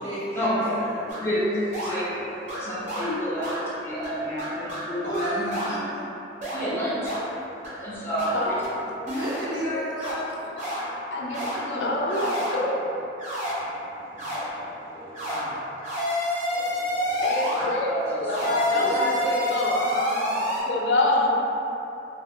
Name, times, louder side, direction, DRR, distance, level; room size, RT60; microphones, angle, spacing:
voice 1, 0.0-1.0 5.0-6.0 9.2-10.3 15.3-15.6 17.5-17.8 18.8-20.5, equal, 85° right, -11 dB, 1.2 m, -32 dB
sound 1, 1.1-1.2 1.7-2.0 2.5-2.6 2.9-3.1 3.4-3.6 4.0-4.1 4.4-4.8 5.1-5.7 6.4-6.6 7.0-7.2 7.6-7.7 8.2-8.3 8.6-8.7 9.1-9.4 10.0-10.1 10.6-10.8 11.3-11.6 12.1-12.5 13.2-13.5 14.2-14.4 15.1-15.4 15.8-17.6 18.3-20.6, equal, 40° right, 0.8 m, -28 dB
voice 2, 1.2-5.5 6.5-8.7 14.1-14.5 14.9-15.1 16.5-17.1 17.9-18.5 18.7-18.9, equal, 15° left, -9 dB, 0.6 m, -30 dB
voice 3, 8.0-8.6 9.7-9.9 10.6-10.7 11.1-12.9 17.2-19.1 19.5-19.8 20.7-21.3, left 2 dB, 80° left, -2 dB, 0.4 m, -26 dB
2.4 x 2.3 x 3.5 m, 3.0 s
head